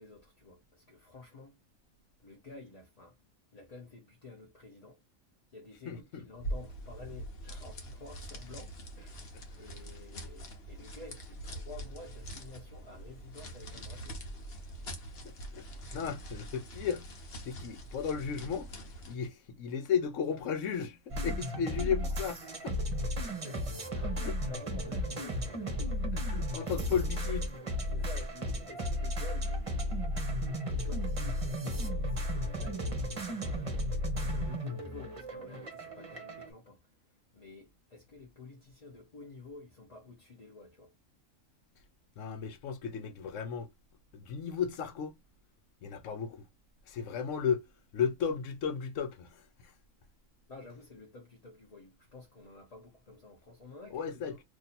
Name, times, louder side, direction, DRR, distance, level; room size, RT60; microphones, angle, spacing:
voice 1, 0.0-1.6 2.2-3.2 3.5-5.0 5.5-14.2 23.2-26.0 26.6-26.8 27.9-30.0 30.7-36.8 37.3-40.9 50.5-54.4, left 3 dB, 35° left, 0.7 m, -51 dB
voice 2, 5.9-6.2 15.2-15.6 15.9-17.0 17.4-18.7 19.0-22.8 24.2-24.3 26.1-27.5 30.7-30.8 42.2-43.7 44.1-45.2 45.8-46.4 46.9-47.6 47.9-49.3 53.9-54.4, left 7 dB, 75° left, 1.0 m, -34 dB
sound 1, 6.3-19.2, right 1 dB, 55° left, 1.1 m, -44 dB
sound 2, 21.1-36.5, equal, 30° right, 0.8 m, -34 dB
2.7 x 2.6 x 4.1 m
omnidirectional pair, 1.4 m